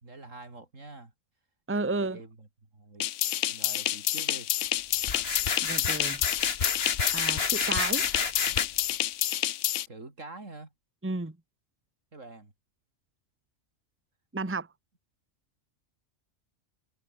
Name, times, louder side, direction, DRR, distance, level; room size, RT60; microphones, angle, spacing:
voice 1, 0.0-1.1 2.0-2.5 2.7-3.1 3.5-4.5 9.9-10.7 12.1-12.5, right 2 dB, 80° right, 4.4 m, -46 dB
voice 2, 1.7-2.2 5.6-6.2 7.1-8.1 11.0-11.3 14.3-14.7, right 3 dB, 10° right, 1.2 m, -32 dB
sound 1, 3.0-9.9, left 13 dB, 75° left, 0.9 m, -29 dB
sound 2, 5.0-8.7, left 5 dB, 50° left, 1.9 m, -30 dB
omnidirectional pair, 1.3 m